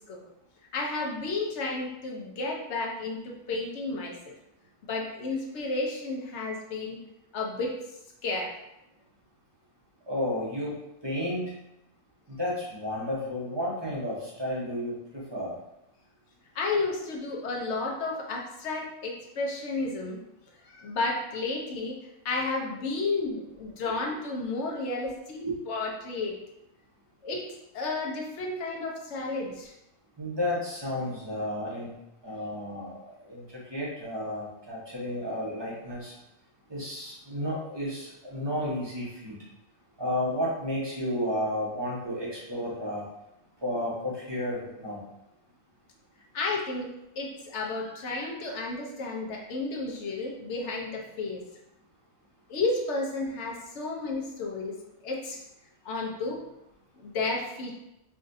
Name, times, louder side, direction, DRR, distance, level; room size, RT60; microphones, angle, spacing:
voice 1, 0.7-4.3 4.9-7.0 7.3-7.8 8.2-8.5 16.5-20.2 20.6-22.0 22.2-26.3 27.2-27.4 27.7-29.7 46.3-51.4 52.5-54.8 55.0-55.4 55.8-56.4 57.0-57.7, left 3 dB, 60° left, -1 dB, 1.0 m, -32 dB
voice 2, 10.1-11.5 12.3-15.5 25.4-25.6 30.2-31.9 32.2-36.1 36.7-39.4 40.0-43.0 43.6-45.0, left 1 dB, 20° right, -6 dB, 0.9 m, -32 dB
4.9 x 2.4 x 2.6 m, 0.87 s
omnidirectional pair, 1.4 m